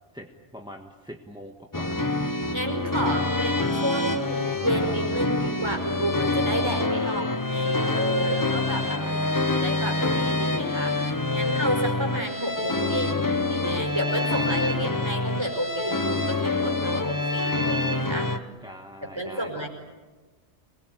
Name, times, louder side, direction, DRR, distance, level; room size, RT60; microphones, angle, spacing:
voice 1, 0.1-2.0 7.0-7.4 8.7-9.5 18.4-19.7, equal, 5° right, 3 dB, 1.4 m, -42 dB
sound 1, 1.7-18.4, left 2 dB, 20° left, 1.0 m, -26 dB
voice 2, 2.5-9.0 9.3-18.3 19.2-19.7, right 1 dB, 25° right, 2 dB, 5.0 m, -30 dB
26.5 x 21.0 x 9.2 m, 1.3 s
omnidirectional pair, 1.2 m